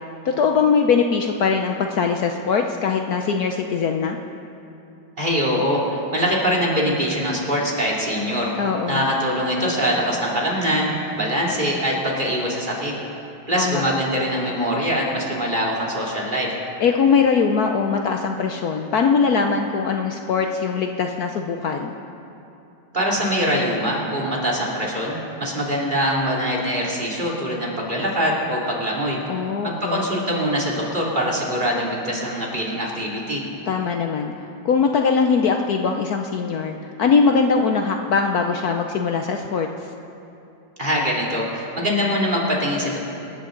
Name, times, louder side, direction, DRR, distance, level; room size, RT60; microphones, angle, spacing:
voice 1, 0.2-4.2 8.6-9.0 13.5-13.8 16.8-21.9 29.3-30.1 33.7-39.7, left 5 dB, 65° left, 4 dB, 1.1 m, -21 dB
voice 2, 5.2-8.5 8.9-12.9 13.5-16.5 22.9-29.2 29.6-33.4 40.8-43.0, equal, 25° right, -3 dB, 2.8 m, -23 dB
27.0 x 13.0 x 3.9 m, 2.8 s
omnidirectional pair, 2.0 m